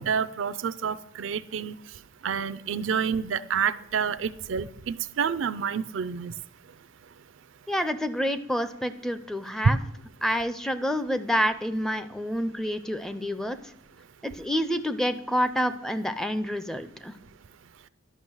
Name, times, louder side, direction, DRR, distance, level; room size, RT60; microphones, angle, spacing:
voice 1, 0.0-1.7 2.2-6.3, right 7 dB, 75° right, 14 dB, 0.4 m, -29 dB
voice 2, 7.7-9.8 10.2-13.6 14.2-17.2, equal, ahead, 11 dB, 0.4 m, -28 dB
11.5 x 6.0 x 6.2 m, 0.78 s
head